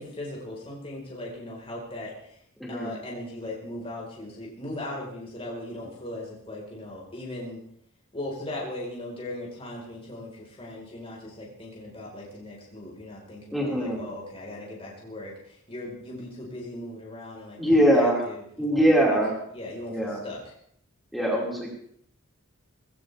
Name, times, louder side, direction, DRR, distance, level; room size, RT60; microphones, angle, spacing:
voice 1, 0.0-2.4 2.7-7.6 8.1-19.2 19.5-20.4, left 1 dB, 25° left, -3 dB, 4.8 m, -38 dB
voice 2, 2.6-2.9 13.5-14.0 17.6-18.2 18.6-19.3 19.9-20.2 21.1-21.7, equal, ahead, -4 dB, 5.1 m, -22 dB
19.5 x 17.0 x 3.5 m, 0.68 s
head